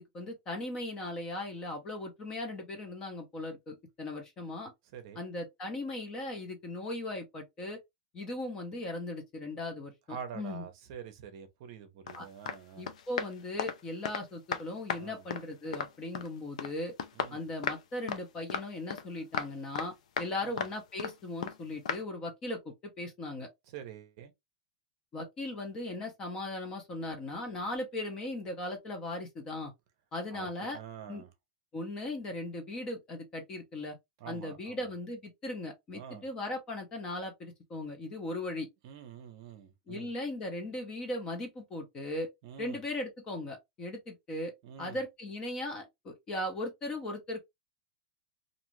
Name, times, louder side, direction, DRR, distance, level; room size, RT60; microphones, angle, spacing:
voice 1, 0.0-4.7 5.2-7.8 8.1-10.6 12.1-12.3 12.8-16.9 17.3-23.5 25.1-29.7 30.1-30.8 31.1-31.2 31.7-34.0 34.3-38.7 39.9-42.3 42.6-44.5 44.8-47.4, left 1 dB, 20° left, 0.7 m, -38 dB
voice 2, 4.9-5.3 10.1-12.9 15.0-15.2 17.2-17.5 20.4-20.7 23.7-24.3 30.3-31.3 34.2-34.9 35.9-36.2 38.8-40.1 42.4-42.8 44.6-45.0, right 8 dB, 45° right, 0.7 m, -46 dB
sound 1, 12.1-12.2 12.5-12.6 12.9-14.3 14.5-15.0 15.3-16.3 16.6-16.7 17.0-17.8 18.1-18.2 18.5-19.1 19.3-19.9 20.2-20.3 20.6-21.2 21.4-21.6 21.9-22.0, left 7 dB, 90° left, 0.5 m, -35 dB
2.6 x 2.4 x 2.9 m
supercardioid pair, 170°, 4 cm